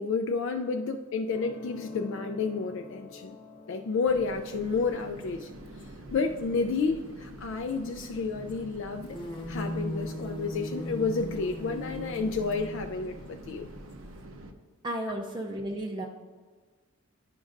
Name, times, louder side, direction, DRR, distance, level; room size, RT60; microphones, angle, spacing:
voice 1, 0.0-3.4 3.7-5.5 6.1-9.2 9.5-13.7, left 4 dB, 65° left, 5 dB, 0.3 m, -30 dB
sound 1, 1.3-8.4 9.2-9.3, left 2 dB, 45° left, 0.8 m, -47 dB
sound 2, 4.0-14.5, right 1 dB, 75° right, 0.6 m, -46 dB
sound 3, 5.2-5.3 5.7-5.8 6.2-6.4 7.7-8.2 8.5-8.6 8.8-14.2, equal, 25° left, 1.1 m, -38 dB
voice 2, 14.8-16.1, right 1 dB, 20° right, 0 dB, 0.4 m, -33 dB
10.5 x 5.1 x 2.5 m, 1.4 s
head